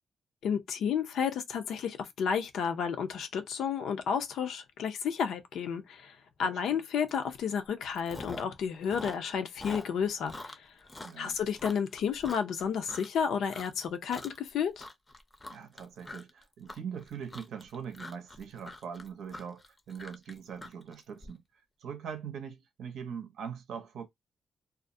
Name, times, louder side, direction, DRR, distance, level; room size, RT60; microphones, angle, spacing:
voice 1, 0.4-6.1 6.4-10.6 11.2-14.9, left 7 dB, 90° left, 0.5 m, -31 dB
voice 2, 6.4-6.8 11.0-11.4 15.5-21.4 21.8-24.1, right 7 dB, 85° right, 0.6 m, -42 dB
Chewing mastication, 7.1-7.3 7.6-8.6 8.8-13.2 13.5-13.9 14.1-14.5 14.8-21.3, left 2 dB, 20° left, 0.5 m, -44 dB
2.4 x 2.0 x 2.5 m
cardioid pair, 115°, 0 cm